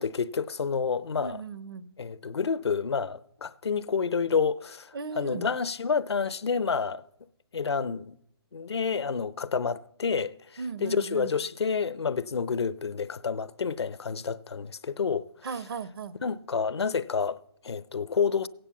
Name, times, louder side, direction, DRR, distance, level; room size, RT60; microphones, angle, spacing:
voice 1, 0.0-1.4 2.0-7.0 7.5-8.2 8.5-15.3 16.2-18.5, left 5 dB, 80° left, 0.7 m, -29 dB
voice 2, 1.2-1.9 4.9-5.5 10.6-11.3 15.4-16.1, right 5 dB, 60° right, 1.1 m, -36 dB
16.0 x 8.9 x 7.0 m
hypercardioid pair, 150°, 14 cm